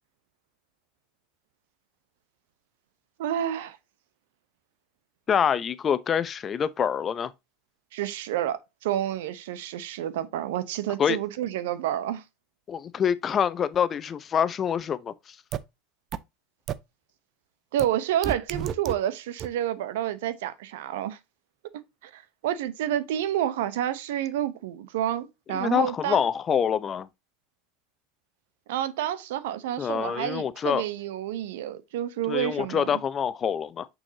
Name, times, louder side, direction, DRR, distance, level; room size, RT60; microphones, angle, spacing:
voice 1, 3.2-3.8 7.9-12.2 17.7-21.2 22.0-26.2 28.7-33.0, right 11 dB, 80° right, 0.8 m, -29 dB
voice 2, 5.3-7.3 11.0-11.2 12.7-15.4 25.5-27.1 29.8-30.8 32.3-33.9, left 8 dB, 35° left, 0.7 m, -26 dB
sound 1, 15.5-15.6 16.1-16.2 16.7-16.8 17.8-17.9 18.2-18.9 19.4-19.5, right 10 dB, 45° right, 0.5 m, -30 dB
6.4 x 6.1 x 2.7 m
hypercardioid pair, 85°, 0 cm